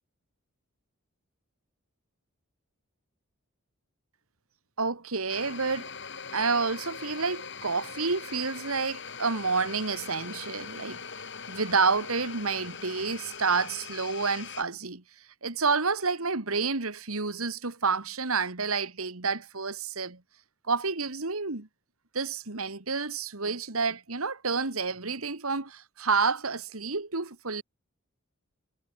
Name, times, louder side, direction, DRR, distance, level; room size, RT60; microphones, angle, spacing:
voice 1, 4.8-5.9 6.3-15.0 15.4-20.2 20.7-21.7 22.1-27.6, right 4 dB, 85° right, 2.1 m, -29 dB
sound 1, 5.3-14.6, left 6 dB, 55° left, 7.1 m, -41 dB
head